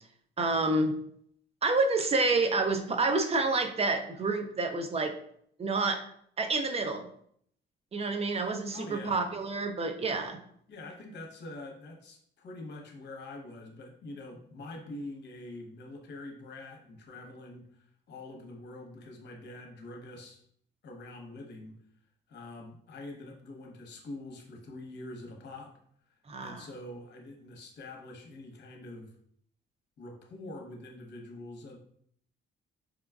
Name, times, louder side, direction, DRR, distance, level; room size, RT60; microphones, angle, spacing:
voice 1, 0.4-0.9 1.6-5.2 5.6-6.0 6.4-7.1 7.9-10.4 26.3-26.6, right 3 dB, 30° right, 6 dB, 0.5 m, -28 dB
voice 2, 8.7-9.1 10.7-20.4 20.8-21.8 22.3-25.7 26.1-29.1 30.0-31.8, left 2 dB, 60° left, 2 dB, 0.9 m, -45 dB
4.8 x 2.3 x 2.3 m, 0.65 s
cardioid pair, 90°, 20 cm